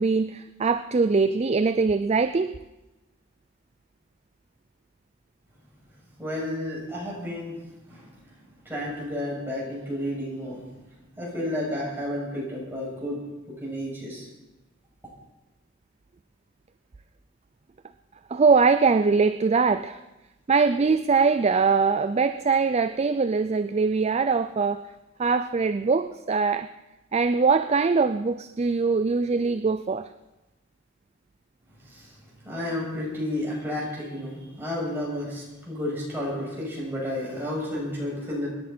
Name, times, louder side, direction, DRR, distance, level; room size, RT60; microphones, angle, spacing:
voice 1, 0.0-2.5 18.3-20.0 20.5-24.8 25.2-26.7 27.1-30.1, right 4 dB, 30° right, 11 dB, 0.4 m, -22 dB
voice 2, 6.2-7.5 7.9-8.0 8.7-10.6 11.2-13.2 13.6-14.3 31.9-32.1 32.4-38.5, left 1 dB, 10° right, -5 dB, 7.0 m, -31 dB
25.0 x 10.5 x 4.4 m, 1.0 s
head